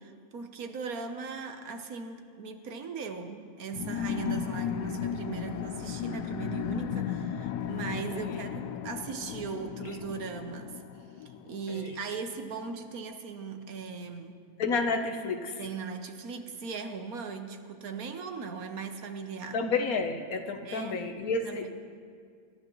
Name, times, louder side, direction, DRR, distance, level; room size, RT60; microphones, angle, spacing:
voice 1, 0.0-10.8 11.2-14.4 15.6-19.6 20.6-21.0 21.4-21.7, right 5 dB, 70° right, 6 dB, 1.4 m, -39 dB
sound 1, 3.7-11.9, left 8 dB, 90° left, 1.2 m, -35 dB
voice 2, 14.6-15.6 19.5-21.7, left 4 dB, 65° left, 6 dB, 1.4 m, -30 dB
26.5 x 13.5 x 3.1 m, 2.2 s
omnidirectional pair, 1.6 m